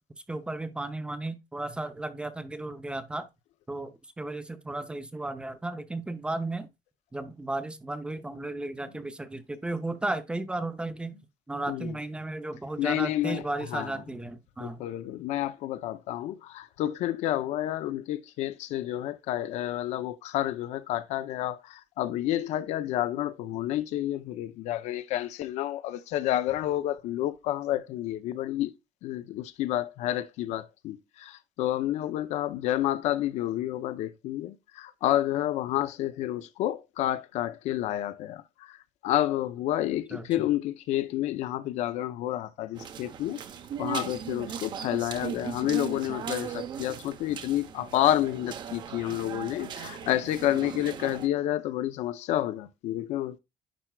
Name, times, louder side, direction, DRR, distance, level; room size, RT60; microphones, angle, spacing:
voice 1, 0.3-3.3 3.7-6.7 7.1-11.2 11.5-14.8 40.1-40.3, right 2 dB, 10° right, 0.6 m, -34 dB
voice 2, 12.8-13.4 13.7-13.9 14.6-28.7 29.0-43.4 43.8-53.4, left 13 dB, 65° left, 0.6 m, -30 dB
sound 1, 42.8-51.3, right 8 dB, 35° right, 0.8 m, -38 dB
10.5 x 4.4 x 2.3 m
cardioid pair, 175°, 13 cm